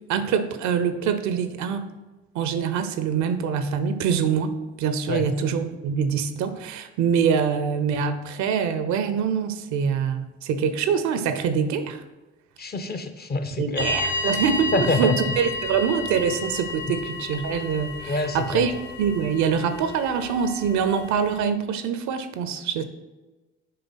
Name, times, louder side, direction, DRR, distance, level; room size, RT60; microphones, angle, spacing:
voice 1, 0.1-1.9 2.3-12.0 13.6-18.7 19.0-22.8, right 7 dB, 60° right, 10 dB, 0.6 m, -24 dB
voice 2, 12.6-13.9 14.7-15.2 18.1-18.6, left 2 dB, 30° left, 8 dB, 0.7 m, -26 dB
sound 1, 13.7-21.4, left 3 dB, 60° left, 2.2 m, -32 dB
9.5 x 3.4 x 4.0 m, 1.1 s
figure-of-eight pair, 45°, 32 cm